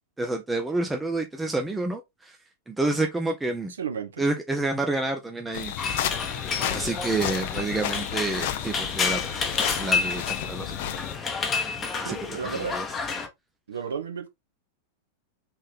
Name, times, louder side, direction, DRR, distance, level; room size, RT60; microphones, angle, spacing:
voice 1, 0.2-2.4 2.7-3.7 4.2-5.7 6.7-9.5 9.8-11.0 12.0-12.2 12.4-12.9, right 2 dB, 10° right, 0.5 m, -29 dB
voice 2, 3.8-4.2 12.0-12.8 13.7-14.3, right 6 dB, 65° right, 0.9 m, -33 dB
sound 1, 5.5-11.1, left 11 dB, 50° left, 0.5 m, -32 dB
sound 2, 5.8-13.3, left 5 dB, 20° left, 0.8 m, -30 dB
3.5 x 3.2 x 3.5 m
figure-of-eight pair, 90°, 0 cm